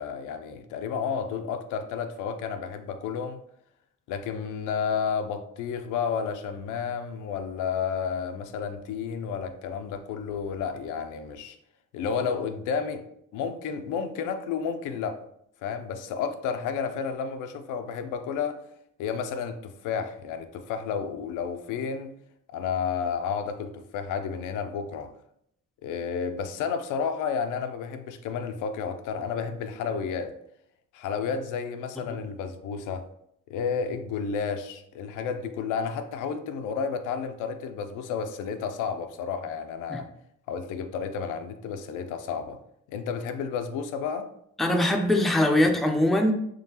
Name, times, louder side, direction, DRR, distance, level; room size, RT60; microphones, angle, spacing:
voice 1, 0.0-3.4 4.1-11.6 11.9-13.0 13.3-15.2 15.6-18.6 19.0-22.1 22.5-25.1 25.8-30.3 30.9-33.0 33.5-40.1 40.5-42.6 42.9-44.3, left 6 dB, 85° left, 0.5 m, -31 dB
voice 2, 44.6-46.3, left 1 dB, ahead, 0.4 m, -22 dB
3.7 x 3.2 x 2.8 m
cardioid pair, 90°, 30 cm